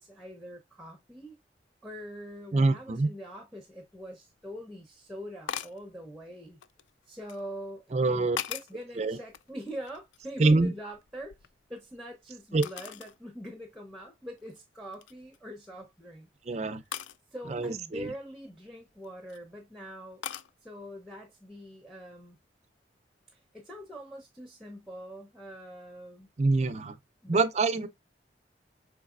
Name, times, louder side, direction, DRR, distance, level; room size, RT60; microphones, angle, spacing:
voice 1, 0.0-1.4 1.8-6.6 7.1-11.3 11.7-16.7 17.3-20.2 20.6-22.4 23.3-26.3 27.2-27.5, equal, ahead, 0.7 m, -44 dB
voice 2, 2.5-3.1 7.9-8.4 9.0-9.2 10.4-10.7 12.5-12.6 16.5-16.8 17.5-18.1 26.4-26.9 27.3-27.9, right 3 dB, 35° right, 0.4 m, -25 dB
sound 1, 4.0-4.1 5.5-5.8 6.6-7.4 8.0-8.8 9.3-10.4 10.7-12.0 12.6-13.2 13.7-13.8 14.4-14.6 14.9-15.4 16.9-17.2 18.9-19.4 20.2-20.5, left 10 dB, 80° left, 0.3 m, -40 dB
4.9 x 3.9 x 2.4 m
head